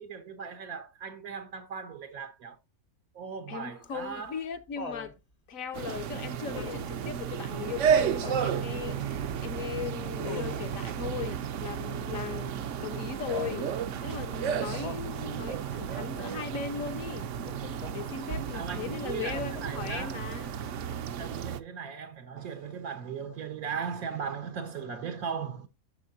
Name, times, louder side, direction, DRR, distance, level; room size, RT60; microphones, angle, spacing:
voice 1, 0.0-2.6 3.1-4.4 18.5-20.2 21.2-25.7, right 6 dB, 80° right, 1.5 m, -38 dB
voice 2, 3.5-5.1 5.5-13.7 14.0-17.3 17.9-20.6, left 7 dB, 65° left, 1.4 m, -38 dB
Laughter, 3.8-5.2 6.5-7.0 8.2-8.7 10.2-10.8 13.3-13.8 14.7-15.1 17.5-18.0 19.3-20.0 21.4-21.5, left 5 dB, 35° left, 0.8 m, -42 dB
sound 1, 5.7-21.6, right 8 dB, 65° right, 0.9 m, -33 dB
11.5 x 6.7 x 2.6 m
omnidirectional pair, 1.5 m